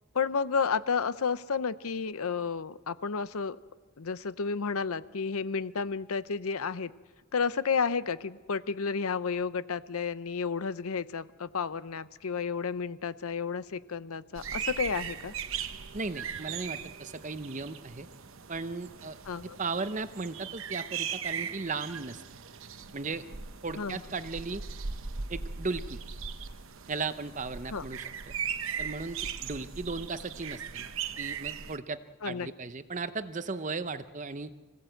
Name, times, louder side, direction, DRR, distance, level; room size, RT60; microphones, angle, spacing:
voice 1, 0.1-3.6 4.0-6.9 7.3-15.3 19.3-19.6 23.8-24.0 27.7-27.8 32.2-32.5, left 5 dB, 75° left, 15 dB, 0.7 m, -31 dB
sound 1, 14.4-31.8, right 7 dB, 65° right, 0.9 m, -39 dB
voice 2, 15.9-18.1 18.5-19.2 19.6-22.2 22.9-23.2 23.6-24.6 25.3-26.0 26.9-28.3 28.8-30.9 31.2-34.5, right 4 dB, 35° right, 12 dB, 0.7 m, -36 dB
25.5 x 16.5 x 7.8 m, 1.4 s
head